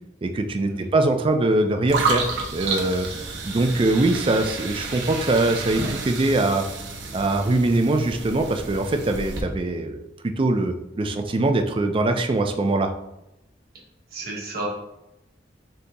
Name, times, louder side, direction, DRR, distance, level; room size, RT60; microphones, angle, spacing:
voice 1, 0.2-3.1 3.4-6.7 7.1-12.9, right 2 dB, 30° right, 6 dB, 0.4 m, -22 dB
sound 1, 1.9-9.4, right 3 dB, 75° right, 0.7 m, -30 dB
voice 2, 14.1-14.7, right 2 dB, 55° right, -2 dB, 1.2 m, -31 dB
4.0 x 2.8 x 3.4 m, 0.89 s
head